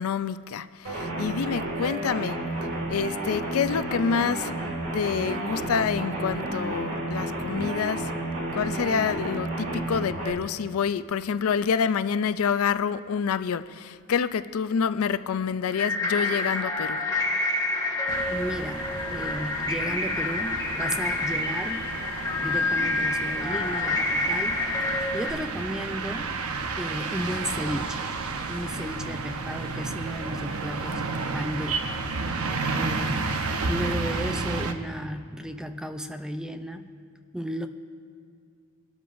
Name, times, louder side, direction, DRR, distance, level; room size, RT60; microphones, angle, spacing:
voice 1, 0.0-2.4 2.9-4.5 4.9-8.1 8.5-17.0, left 6 dB, 75° left, 0.4 m, -27 dB
sound 1, 0.8-10.3, right 1 dB, 70° right, 2.3 m, -31 dB
sound 2, 15.7-25.3, left 2 dB, 15° left, 1.3 m, -28 dB
sound 3, 18.1-34.7, right 3 dB, 90° right, 0.8 m, -32 dB
voice 2, 18.3-21.8 22.4-26.3 26.8-28.0 28.5-31.0 31.3-31.9 32.8-33.3 33.7-36.9 37.3-37.7, equal, 5° right, 0.4 m, -34 dB
22.5 x 12.5 x 2.6 m
head